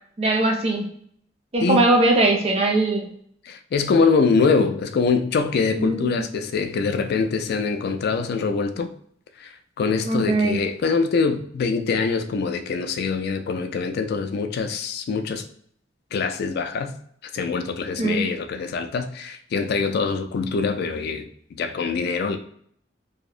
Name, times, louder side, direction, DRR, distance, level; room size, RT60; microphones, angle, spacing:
voice 1, 0.2-0.8 1.5-3.1 5.8-6.2 10.0-10.6 18.0-18.3, right 2 dB, 35° right, 0.5 m, -20 dB
voice 2, 3.4-8.9 9.4-15.4 16.1-16.9 17.3-22.4, left 4 dB, 55° left, 0.3 m, -24 dB
2.7 x 2.0 x 2.4 m
head